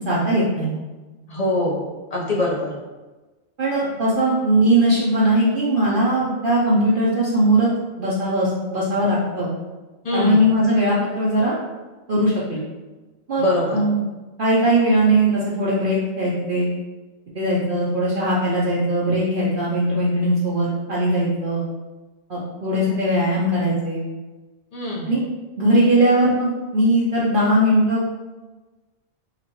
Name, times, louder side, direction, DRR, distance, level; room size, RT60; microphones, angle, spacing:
voice 1, 0.0-0.8 3.6-7.7 8.0-9.5 10.1-11.6 12.1-12.6 13.3-13.4 13.7-14.0 14.4-16.7 17.3-21.6 22.3-24.0 25.1-25.2 25.6-28.1, right 1 dB, 55° right, -6 dB, 0.8 m, -19 dB
voice 2, 1.3-1.8 2.1-2.7 10.0-10.4 13.4-13.8 24.7-25.1, left 1 dB, 35° left, -4 dB, 0.9 m, -23 dB
5.8 x 2.5 x 3.0 m, 1.2 s
omnidirectional pair, 1.2 m